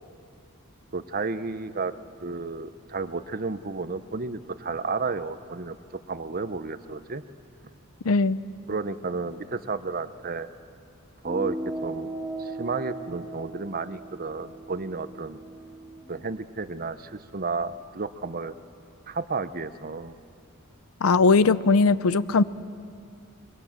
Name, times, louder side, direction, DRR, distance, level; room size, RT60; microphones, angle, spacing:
voice 1, 0.9-1.9 2.2-5.8 6.1-7.2 8.7-10.5 11.2-12.1 12.4-15.4 16.1-18.5 19.1-20.2, right 4 dB, 45° right, 13 dB, 0.8 m, -32 dB
voice 2, 8.0-8.4 21.0-22.4, left 4 dB, 85° left, 16 dB, 0.6 m, -19 dB
sound 1, 11.2-16.1, right 1 dB, 5° right, 1.9 m, -37 dB
26.0 x 23.0 x 7.4 m, 2.4 s
head